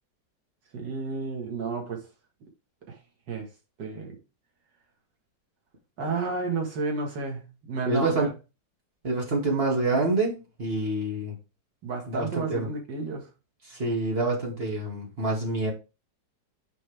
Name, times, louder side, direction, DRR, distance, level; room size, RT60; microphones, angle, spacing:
voice 1, 0.7-2.1 2.9-3.0 3.3-3.5 3.8-4.2 6.0-8.3 11.8-13.3, right 4 dB, 70° right, 2.5 m, -31 dB
voice 2, 7.9-8.3 9.0-11.4 12.1-12.7 13.6-15.7, right 2 dB, 30° right, 2.4 m, -27 dB
6.4 x 5.3 x 3.5 m
omnidirectional pair, 2.0 m